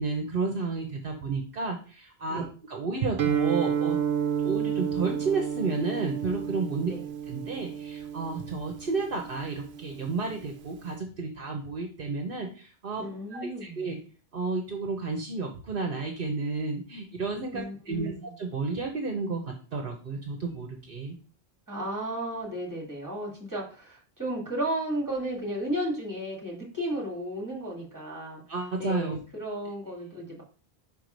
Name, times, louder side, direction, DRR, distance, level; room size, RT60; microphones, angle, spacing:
voice 1, 0.0-4.0 4.4-6.9 7.3-14.0 14.3-21.2 28.5-29.2, right 4 dB, 60° right, 3 dB, 1.1 m, -32 dB
Guitar, 3.2-10.9, right 8 dB, 85° right, 0.9 m, -31 dB
voice 2, 13.0-13.9 17.5-18.3 21.7-28.4 28.8-30.4, right 1 dB, 20° right, -2 dB, 2.5 m, -34 dB
5.3 x 4.7 x 5.2 m, 0.38 s
omnidirectional pair, 1.0 m